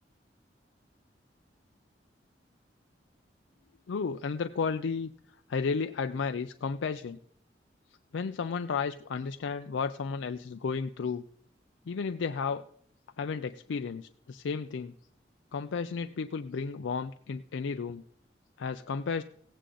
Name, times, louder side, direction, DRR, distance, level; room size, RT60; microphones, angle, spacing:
voice 1, 3.9-5.1 5.5-7.2 8.1-11.2 11.9-12.6 13.2-14.9 15.5-18.0 18.6-19.2, left 5 dB, 90° left, 9 dB, 0.4 m, -33 dB
16.5 x 8.4 x 3.8 m, 0.65 s
head